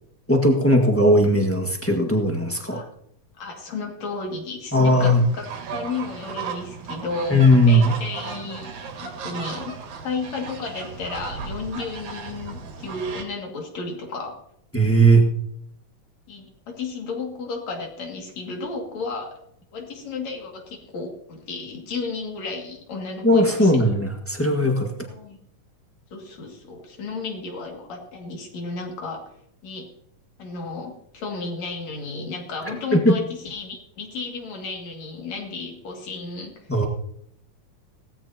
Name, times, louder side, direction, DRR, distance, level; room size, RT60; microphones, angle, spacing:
voice 1, 0.3-2.8 4.7-5.2 7.3-7.9 14.7-15.3 23.2-24.9 32.9-33.1 36.7-36.8, equal, 15° left, 1 dB, 0.5 m, -18 dB
voice 2, 3.4-8.7 9.0-9.8 10.0-14.4 16.3-19.4 19.7-23.9 25.1-25.4 26.1-29.3 29.6-29.9 30.4-36.6, left 3 dB, 60° left, 1 dB, 3.5 m, -33 dB
sound 1, 4.9-13.2, right 5 dB, 65° right, 3.0 m, -35 dB
18.5 x 14.0 x 2.9 m, 0.72 s
omnidirectional pair, 3.6 m